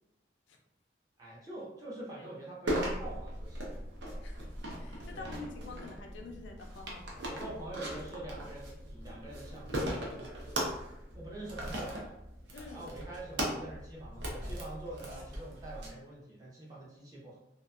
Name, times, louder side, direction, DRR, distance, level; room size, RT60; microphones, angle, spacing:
voice 1, 1.2-3.6 5.1-5.3 7.1-10.3 11.1-12.2 12.7-17.4, right 2 dB, 20° right, -5 dB, 0.6 m, -45 dB
sound 1, 2.7-15.9, right 1 dB, 70° right, 0.6 m, -39 dB
voice 2, 4.2-4.5 4.8-7.2 12.5-12.9, left 3 dB, 85° left, 2 dB, 0.4 m, -47 dB
2.7 x 2.4 x 2.2 m, 0.86 s
head